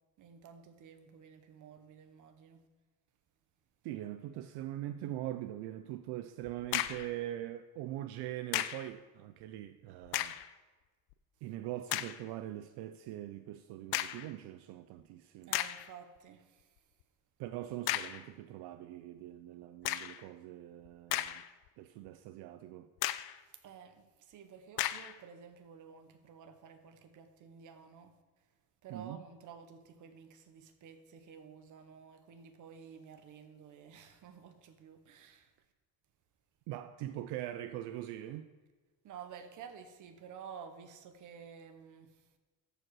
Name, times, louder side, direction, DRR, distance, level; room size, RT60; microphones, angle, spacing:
voice 1, 0.2-2.6 15.5-16.9 23.6-28.5 28.8-35.5 39.0-42.3, right 7 dB, 50° right, 1.0 m, -52 dB
voice 2, 3.8-10.4 11.4-15.5 17.4-21.4 21.8-22.9 28.9-29.2 36.7-38.5, right 13 dB, 75° right, 0.5 m, -42 dB
sound 1, 6.5-7.1 8.5-8.9 10.0-10.5 11.1-11.2 11.9-12.2 13.9-14.3 15.0-15.1 15.5-15.9 17.9-18.3 19.8-20.2 20.9-21.7 22.1-22.2 23.0-23.4 24.8-25.2, left 14 dB, 70° left, 0.5 m, -35 dB
13.5 x 5.0 x 4.7 m
cardioid pair, 140°, 40 cm